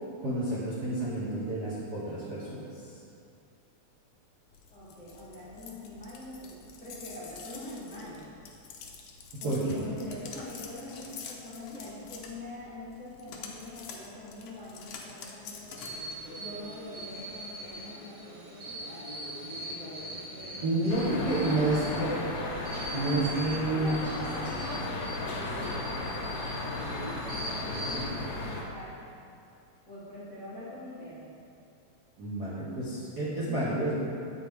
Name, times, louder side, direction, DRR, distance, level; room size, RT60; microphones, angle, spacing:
voice 1, 0.2-2.8 9.3-9.8 20.6-22.2 22.9-24.1 27.9-28.1 32.2-33.9, right 2 dB, 70° right, -9 dB, 0.9 m, -30 dB
sound 1, 4.5-17.9, left 5 dB, 85° left, 1.2 m, -47 dB
voice 2, 4.7-8.3 9.4-16.0 16.3-19.1 19.6-22.2 23.5-26.9 27.2-29.1 29.9-31.3 33.4-33.9, left 1 dB, 40° left, -11 dB, 1.1 m, -44 dB
sound 2, 15.8-28.1, right 1 dB, 55° right, 2.4 m, -41 dB
sound 3, 20.9-28.6, left 2 dB, 65° left, 1.4 m, -35 dB
8.2 x 4.8 x 3.4 m, 2.5 s
omnidirectional pair, 3.3 m